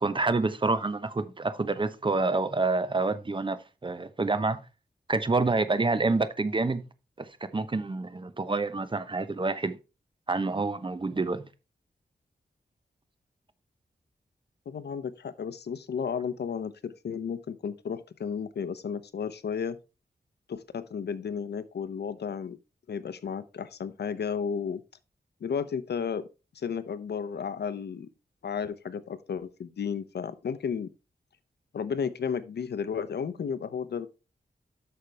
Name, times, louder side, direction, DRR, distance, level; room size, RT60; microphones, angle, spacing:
voice 1, 0.0-3.6 3.8-4.6 5.1-6.8 7.2-7.3 7.5-9.8 10.3-11.4, right 3 dB, 30° right, 0.8 m, -27 dB
voice 2, 14.7-19.8 20.5-22.6 22.9-24.8 25.4-26.3 26.5-28.1 28.4-30.9 31.7-34.1, left 6 dB, 90° left, 0.7 m, -33 dB
8.6 x 6.5 x 3.4 m
wide cardioid pair, 105°, 17 cm